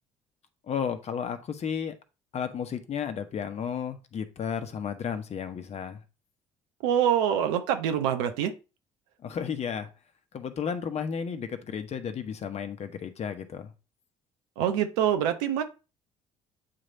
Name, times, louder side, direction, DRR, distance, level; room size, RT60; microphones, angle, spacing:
voice 1, 0.7-1.9 2.3-6.0 9.2-9.9 10.3-13.7, left 7 dB, 45° left, 1.1 m, -33 dB
voice 2, 6.8-8.5 14.6-15.6, right 9 dB, 70° right, 0.9 m, -25 dB
8.7 x 3.2 x 4.0 m
hypercardioid pair, 55°, 16 cm